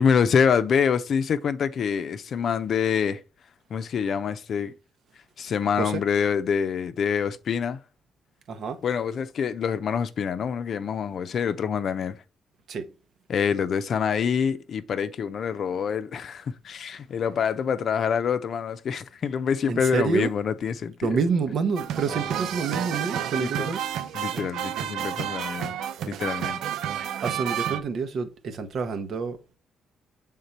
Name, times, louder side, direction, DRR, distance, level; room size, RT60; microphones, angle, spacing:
voice 1, 0.0-3.2 3.7-4.7 5.4-7.8 8.8-12.2 13.3-21.1 23.4-23.7 24.1-25.7 26.1-26.6, left 7 dB, 60° left, 0.6 m, -26 dB
voice 2, 8.5-8.8 12.7-12.9 19.7-20.3 21.0-23.9 27.2-29.6, right 5 dB, 60° right, 1.0 m, -28 dB
sound 1, 21.8-27.8, right 10 dB, 80° right, 0.5 m, -30 dB
6.6 x 3.7 x 4.2 m
cardioid pair, 90°, 0 cm